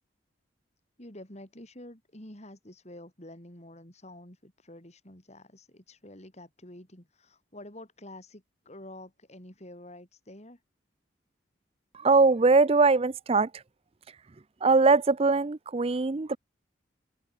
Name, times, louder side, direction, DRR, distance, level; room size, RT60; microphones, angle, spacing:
voice 1, 1.0-10.6, left 1 dB, 40° left, 5.3 m, -48 dB
voice 2, 11.9-13.6 14.6-16.4, right 3 dB, 35° right, 0.5 m, -22 dB
head